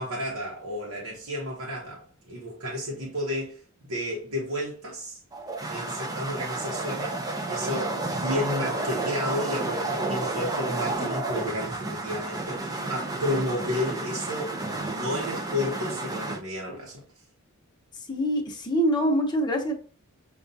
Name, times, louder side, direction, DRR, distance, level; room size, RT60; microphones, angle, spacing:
voice 1, 0.0-3.6 3.9-5.2 5.7-17.0, left 1 dB, 80° right, 1.0 m, -32 dB
sound 1, 5.3-16.4, right 2 dB, 15° right, 0.5 m, -31 dB
voice 2, 17.9-19.7, equal, 20° left, 0.8 m, -25 dB
6.9 x 2.3 x 2.7 m
head